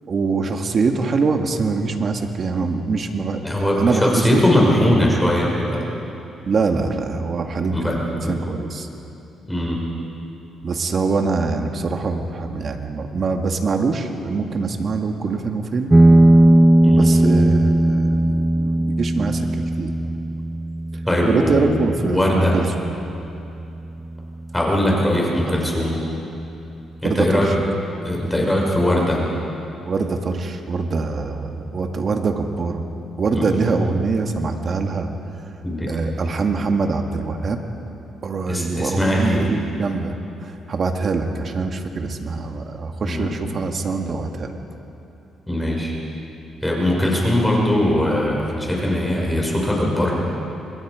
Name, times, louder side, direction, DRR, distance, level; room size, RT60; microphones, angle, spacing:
voice 1, 0.1-3.4 3.8-4.4 6.5-8.9 10.6-15.9 16.9-20.1 21.3-22.9 27.0-27.7 29.9-32.8 33.2-35.1 35.9-37.6 38.2-40.1 40.4-44.6, right 4 dB, 45° right, 4 dB, 2.0 m, -23 dB
voice 2, 3.4-5.8 7.7-8.3 9.5-9.8 16.8-17.0 21.1-21.6 22.0-22.6 24.5-26.0 27.0-27.5 28.0-29.2 33.3-33.5 35.6-35.9 38.5-39.5 43.0-43.3 45.5-45.9 46.6-50.1, left 1 dB, 10° left, -2 dB, 5.6 m, -20 dB
sound 1, 15.9-24.9, right 1 dB, 10° right, 0.5 m, -18 dB
27.5 x 21.5 x 5.1 m, 2.9 s
cardioid pair, 90°, 0 cm